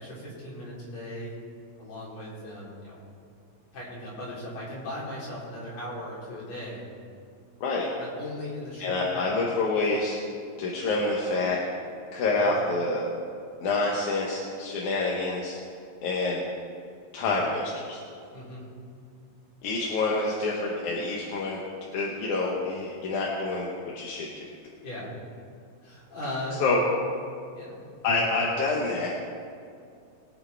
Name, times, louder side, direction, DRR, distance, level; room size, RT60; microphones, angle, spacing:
voice 1, 0.0-1.4 1.8-3.0 3.7-6.9 8.0-9.4 18.3-18.7 24.8-25.2 25.8-26.6 27.5-27.8 28.3-28.4, left 1 dB, 65° left, -8 dB, 5.0 m, -38 dB
voice 2, 8.8-10.2 10.6-11.6 12.1-13.0 13.6-15.6 16.0-16.4 17.1-18.0 19.6-21.6 21.9-23.7 24.0-24.5 26.6-26.8 28.0-29.1, left 3 dB, 85° left, -3 dB, 2.7 m, -27 dB
22.5 x 8.6 x 3.5 m, 2.4 s
omnidirectional pair, 3.3 m